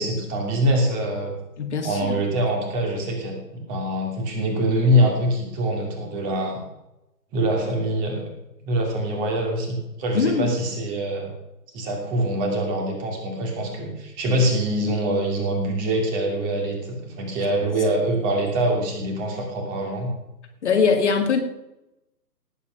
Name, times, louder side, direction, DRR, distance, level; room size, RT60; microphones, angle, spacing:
voice 1, 0.0-1.3 1.8-6.6 7.3-8.2 8.6-11.3 11.7-20.1, right 1 dB, 15° right, 2 dB, 2.6 m, -24 dB
voice 2, 1.6-2.2 10.1-10.5 20.6-21.4, left 5 dB, 45° left, 4 dB, 2.1 m, -21 dB
18.0 x 8.3 x 6.0 m, 0.90 s
figure-of-eight pair, 140°, 49 cm